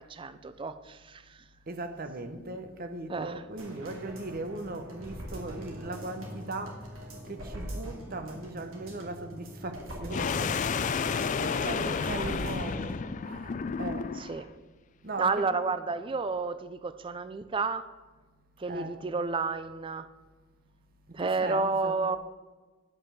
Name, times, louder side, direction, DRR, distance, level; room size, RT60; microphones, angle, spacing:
voice 1, 0.0-1.4 3.1-3.3 12.0-12.2 14.2-14.5 15.2-17.9 18.6-20.1 21.1-22.2, right 4 dB, 25° right, 0.4 m, -31 dB
voice 2, 1.7-10.5 11.1-12.9 13.2-14.1 15.0-15.5 18.7-19.0 21.2-22.1, right 2 dB, 45° right, 0.9 m, -39 dB
sound 1, 3.6-13.0 13.4-13.5, equal, 85° right, 2.4 m, -43 dB
sound 2, 10.1-14.4, left 5 dB, 40° left, 0.4 m, -31 dB
10.5 x 5.6 x 6.8 m
head